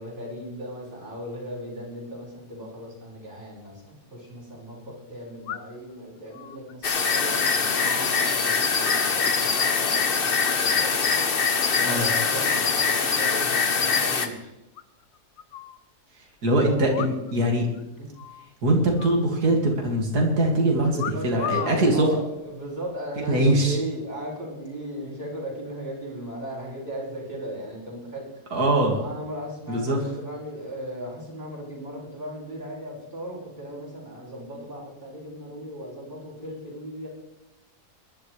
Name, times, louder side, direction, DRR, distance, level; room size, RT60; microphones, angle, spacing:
voice 1, 0.0-11.2 11.8-14.5 18.0-18.1 20.9-28.4 29.0-37.1, equal, 30° right, -6 dB, 5.6 m, -37 dB
sound 1, 3.7-3.8 5.5-5.9 6.3-8.4 8.6-9.7 10.4-11.0 11.3-11.6 12.0-12.6 12.9-13.0 13.2-13.3 13.6-13.7 14.0-14.1 14.8-15.8 16.9-17.5 17.7-17.8 18.2-18.5 19.0-19.9 21.0-21.8 22.6-22.9, left 10 dB, 85° left, 1.3 m, -38 dB
sound 2, 6.8-14.3, left 5 dB, 40° left, 1.1 m, -23 dB
voice 2, 16.4-17.7 18.6-22.1 23.2-23.8 28.5-29.0 29.7-30.1, right 1 dB, 70° right, 0 dB, 2.8 m, -22 dB
22.0 x 11.5 x 3.3 m, 0.96 s
omnidirectional pair, 1.7 m